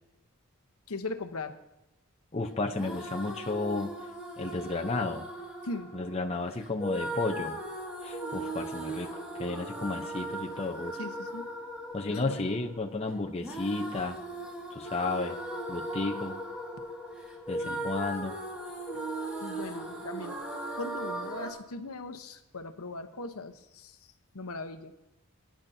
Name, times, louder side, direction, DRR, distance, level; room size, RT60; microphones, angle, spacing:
voice 1, 0.9-1.6 5.6-5.9 11.0-11.4 12.1-12.5 17.6-17.8 19.4-20.4 20.8-24.0 24.3-24.9, left 2 dB, 75° left, 6 dB, 1.0 m, -39 dB
voice 2, 2.3-3.9 4.4-5.3 5.9-7.6 8.0-10.9 11.9-14.2 14.7-15.4 15.7-16.4 17.5-18.4, left 3 dB, 30° left, 3 dB, 0.7 m, -33 dB
sound 1, 2.7-21.5, right 1 dB, 5° right, 2.1 m, -38 dB
22.5 x 10.5 x 2.7 m, 0.93 s
head